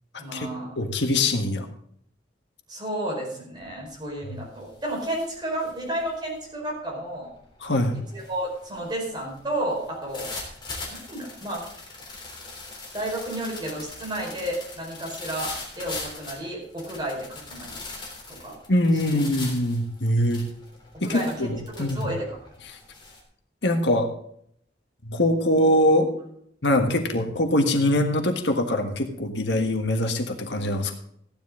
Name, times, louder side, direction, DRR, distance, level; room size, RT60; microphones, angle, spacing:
voice 1, 0.1-0.8 2.7-7.3 8.1-10.3 10.9-11.6 12.9-17.8 18.3-18.6 19.1-19.2 21.0-22.4, right 1 dB, 25° right, -2 dB, 4.9 m, -32 dB
voice 2, 0.8-1.7 7.6-7.9 18.7-20.4 21.0-22.1 23.6-24.1 25.0-26.1 26.6-30.9, left 1 dB, 75° left, 5 dB, 1.5 m, -23 dB
sound 1, 3.6-3.9 4.3-23.2, left 3 dB, 25° left, 3.4 m, -41 dB
15.0 x 10.5 x 3.8 m, 0.67 s
head